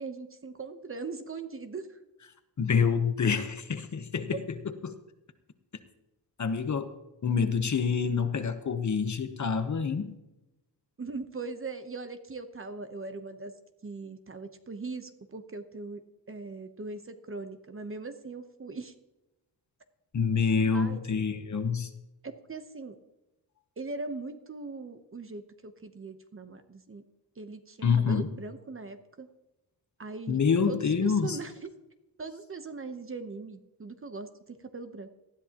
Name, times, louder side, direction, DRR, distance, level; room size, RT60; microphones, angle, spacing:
voice 1, 0.0-2.0 11.0-13.5 13.8-16.0 16.3-18.9 20.6-21.0 22.2-23.0 23.8-27.0 27.4-29.3 30.0-30.4 30.7-31.7 32.2-35.1, right 3 dB, 30° right, 0.9 m, -40 dB
voice 2, 2.6-4.4 4.8-5.0 6.4-6.9 7.2-10.1 20.1-21.9 27.8-28.3 30.3-31.4, left 6 dB, 40° left, 1.0 m, -27 dB
19.0 x 13.0 x 2.9 m
wide cardioid pair, 165°, 42 cm